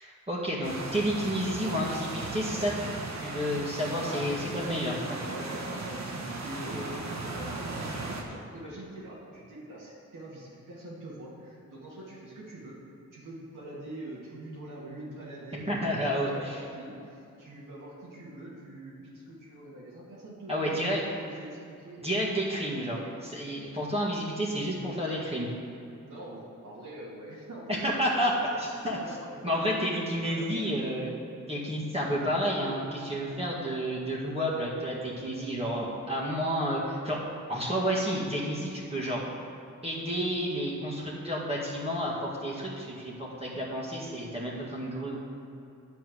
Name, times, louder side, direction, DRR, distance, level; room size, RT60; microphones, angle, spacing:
voice 1, 0.0-2.9 3.2-5.2 15.7-16.6 20.5-21.0 22.0-25.5 27.7-28.3 28.6-29.0 29.4-31.1 31.5-37.2 37.5-39.2 39.8-45.3, equal, 20° right, -5 dB, 1.9 m, -30 dB
sound 1, 0.6-8.2, right 2 dB, 60° right, 1.2 m, -37 dB
voice 2, 5.3-12.8 13.1-20.8 21.1-22.1 26.1-31.0, right 1 dB, 80° right, -7 dB, 2.0 m, -44 dB
9.7 x 4.6 x 7.8 m, 2.7 s
cardioid pair, 65°, 31 cm